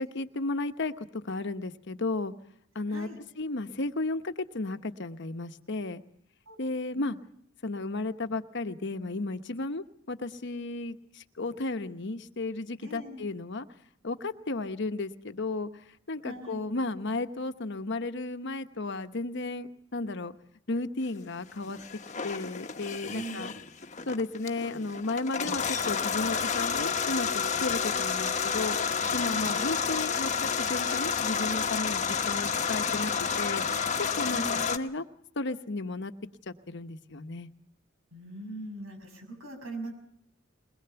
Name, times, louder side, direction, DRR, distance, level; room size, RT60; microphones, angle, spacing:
voice 1, 0.0-2.3 2.7-3.1 3.4-6.0 6.6-7.2 7.6-13.7 14.0-15.7 16.1-20.3 20.7-21.8 22.2-23.5 24.1-27.3 27.6-28.8 29.1-33.6 34.1-35.0 35.4-36.1 36.5-37.5, left 2 dB, 60° left, 9 dB, 1.1 m, -34 dB
voice 2, 12.8-13.2 16.2-16.6 23.1-23.5 29.4-29.7 34.3-34.7 38.1-39.9, right 2 dB, 85° right, 5 dB, 6.4 m, -41 dB
sound 1, 21.7-34.8, left 6 dB, 35° left, 1.1 m, -30 dB
22.0 x 21.0 x 7.0 m, 0.67 s
head